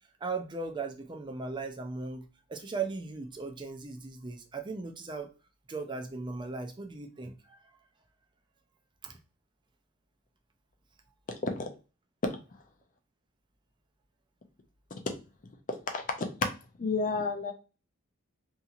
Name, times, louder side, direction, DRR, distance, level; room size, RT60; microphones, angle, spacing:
voice 1, 0.2-5.3 5.7-7.6 9.0-9.1, right 4 dB, 20° right, 4 dB, 0.4 m, -37 dB
voice 2, 11.3-11.7 12.2-12.6 15.0-15.1 15.7-16.5 16.8-17.5, left 3 dB, 35° left, 5 dB, 0.4 m, -31 dB
2.8 x 2.8 x 2.4 m, 0.32 s
head